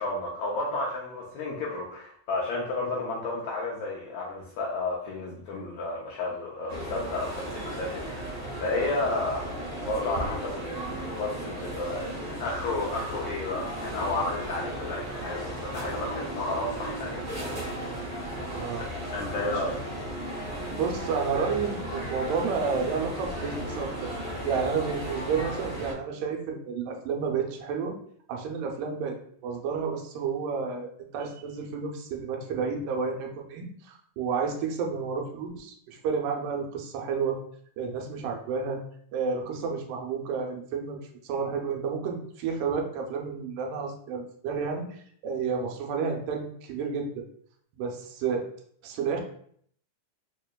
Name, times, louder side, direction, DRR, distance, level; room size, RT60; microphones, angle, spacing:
voice 1, 0.0-17.2 18.8-19.8, left 2 dB, 80° left, -3 dB, 1.6 m, -32 dB
sound 1, 6.7-25.9, right 1 dB, 60° right, 0.9 m, -35 dB
voice 2, 18.5-18.9 19.5-19.6 20.7-27.9 28.3-29.2 29.4-37.4 37.8-38.8 39.1-47.3 47.7-48.4 48.8-49.2, right 5 dB, 85° right, 2 dB, 2.2 m, -31 dB
5.1 x 2.9 x 2.2 m, 0.63 s
omnidirectional pair, 3.7 m